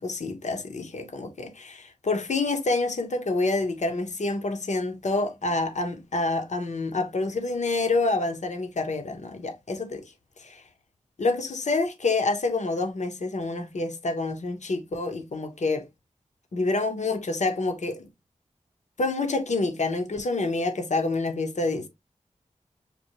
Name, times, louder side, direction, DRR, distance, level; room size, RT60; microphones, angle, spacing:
voice 1, 0.0-10.0 10.4-10.6 11.2-15.9 16.5-18.1 19.0-21.9, left 3 dB, 70° left, 1.0 m, -27 dB
6.8 x 2.4 x 2.9 m
cardioid pair, 40°, 13 cm